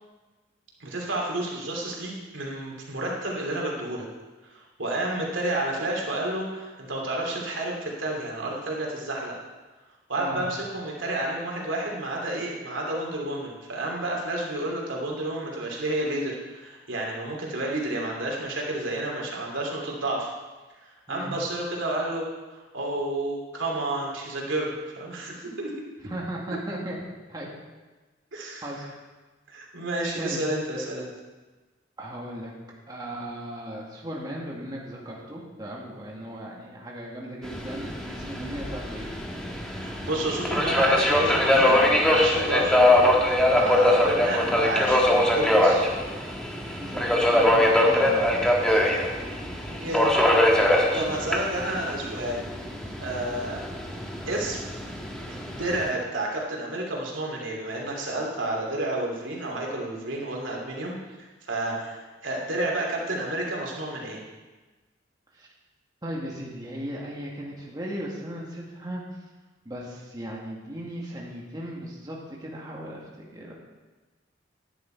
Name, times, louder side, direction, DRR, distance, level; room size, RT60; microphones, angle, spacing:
voice 1, 0.8-4.1 4.4-9.3 10.1-20.3 20.8-22.3 22.5-25.7 28.3-28.7 29.5-31.1 39.7-41.8 42.1-42.9 43.5-45.9 49.7-50.2 50.9-52.4 53.0-53.7 54.3-54.6 55.3-64.2, right 1 dB, 80° right, -1 dB, 2.9 m, -30 dB
voice 2, 26.0-27.0 27.3-27.5 28.6-28.9 30.2-30.4 32.0-32.5 32.9-39.1 46.8-49.1 49.7-49.8 51.2-51.3 65.3-65.5 66.0-69.2 69.7-73.5, right 1 dB, 20° right, -3 dB, 1.8 m, -37 dB
Subway metro underground, 37.4-55.9, left 1 dB, 5° left, 1.4 m, -23 dB
11.0 x 10.5 x 4.5 m, 1.3 s
head